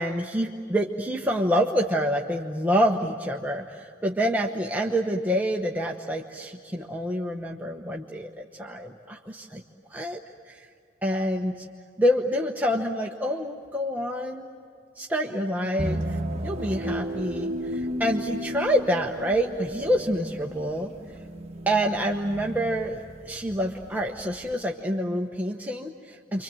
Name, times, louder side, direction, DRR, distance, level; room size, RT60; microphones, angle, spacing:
voice 1, 0.0-9.6 9.9-10.2 10.5-10.7 11.0-11.7 12.0-14.5 15.0-20.9 21.7-26.4, equal, 10° right, 0 dB, 0.9 m, -27 dB
sound 1, 15.8-24.5, equal, 30° right, 1.2 m, -34 dB
30.0 x 25.0 x 7.7 m, 2.4 s
head